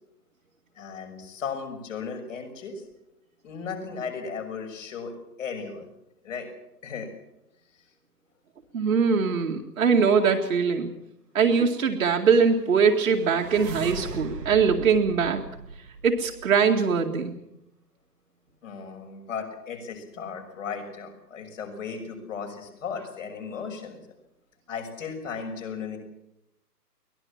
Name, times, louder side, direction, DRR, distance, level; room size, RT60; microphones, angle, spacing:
voice 1, 0.8-2.8 3.4-5.1 5.4-5.9 6.2-6.5 6.8-7.1 18.6-24.0 24.7-26.0, left 6 dB, 50° left, 5 dB, 6.5 m, -36 dB
voice 2, 8.7-10.9 11.3-15.4 16.0-17.3, right 5 dB, 55° right, 1 dB, 2.3 m, -22 dB
sound 1, 12.6-16.7, right 4 dB, 70° right, 2.1 m, -39 dB
23.5 x 20.0 x 7.2 m, 0.85 s
figure-of-eight pair, 140°, 50 cm